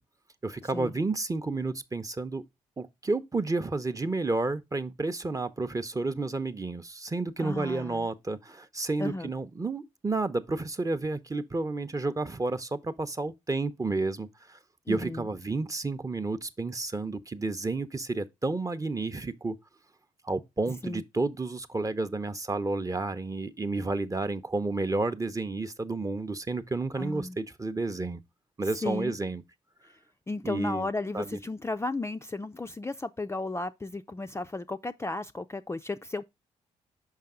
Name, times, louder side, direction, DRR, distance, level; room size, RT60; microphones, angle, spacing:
voice 1, 0.4-2.4 2.8-14.6 14.9-19.6 20.2-28.2 28.6-29.4 30.4-30.9 31.1-31.4, right 3 dB, 20° right, 0.7 m, -31 dB
voice 2, 7.4-8.1 9.0-9.3 14.9-15.3 20.8-21.0 27.0-27.4 28.8-29.1 30.3-36.2, left 2 dB, 15° left, 0.4 m, -34 dB
5.6 x 5.2 x 3.6 m
hypercardioid pair, 40°, 16 cm